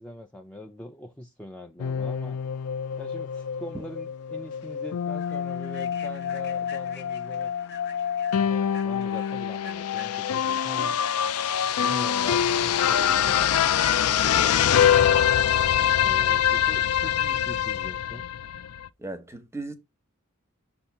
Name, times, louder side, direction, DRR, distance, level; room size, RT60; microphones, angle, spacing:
voice 1, 0.0-2.4 3.0-7.5 8.4-11.0 11.8-15.2 16.0-18.3, left 1 dB, 5° left, 0.4 m, -42 dB
sound 1, 1.8-18.9, left 9 dB, 85° left, 0.4 m, -25 dB
Human voice / Train, 3.8-3.9 4.4-4.6 5.1-12.7, left 5 dB, 50° left, 0.8 m, -49 dB
voice 2, 19.0-19.7, right 2 dB, 10° right, 0.8 m, -36 dB
6.8 x 2.6 x 5.5 m
head